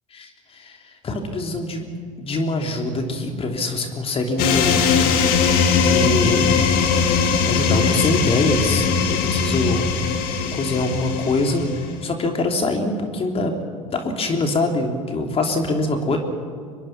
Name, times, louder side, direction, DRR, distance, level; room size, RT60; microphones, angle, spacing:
voice 1, 0.1-1.9 2.2-4.8 5.8-6.7 7.0-9.9 10.5-13.6 13.9-16.2, left 2 dB, 35° left, 3 dB, 3.4 m, -24 dB
sound 1, 4.4-12.0, left 5 dB, 60° left, 2.7 m, -20 dB
25.0 x 21.0 x 6.1 m, 2.1 s
hypercardioid pair, 70°, 17 cm